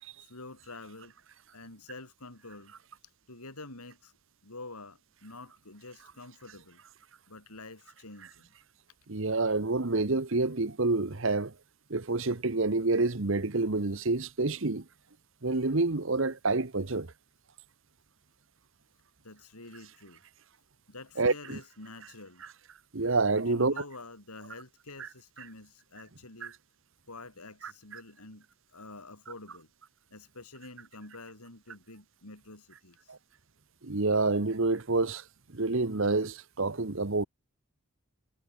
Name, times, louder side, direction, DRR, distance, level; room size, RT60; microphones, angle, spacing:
voice 1, 0.2-1.1 1.5-2.7 3.3-4.1 4.4-6.8 7.3-8.5 19.2-20.2 20.9-22.4 23.3-26.6 27.1-28.5 28.7-29.7 30.1-33.2, left 2 dB, 85° left, 5.2 m, -48 dB
voice 2, 9.1-11.5 11.9-14.8 15.4-17.1 21.2-21.6 22.9-23.7 33.1-33.2 33.8-35.2 35.5-37.3, right 3 dB, 60° right, 1.1 m, -28 dB
head